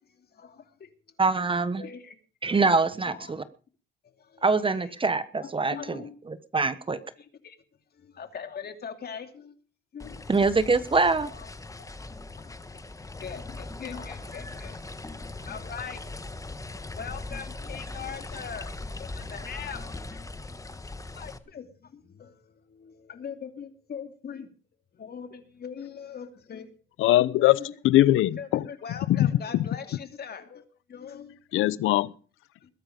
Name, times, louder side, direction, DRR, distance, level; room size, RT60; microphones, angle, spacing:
voice 1, 1.2-1.8 2.4-3.4 4.4-6.0 6.3-7.0 10.3-11.3, right 4 dB, 25° right, 1.2 m, -24 dB
voice 2, 5.7-6.1 8.2-9.3 9.9-10.1 11.2-11.5 13.2-13.4 13.8-14.7 15.5-16.0 17.0-18.7 19.3-19.8 21.2-21.6 23.1-24.5 25.0-26.7 27.3-27.7 28.3-30.6 30.9-31.3, left 7 dB, 55° left, 2.7 m, -39 dB
sound 1, 10.0-21.4, left 2 dB, 15° left, 1.5 m, -40 dB
voice 3, 27.0-28.7 29.1-29.7 31.5-32.1, left 15 dB, 85° left, 0.8 m, -21 dB
21.0 x 10.5 x 5.2 m
cardioid pair, 90°, 20 cm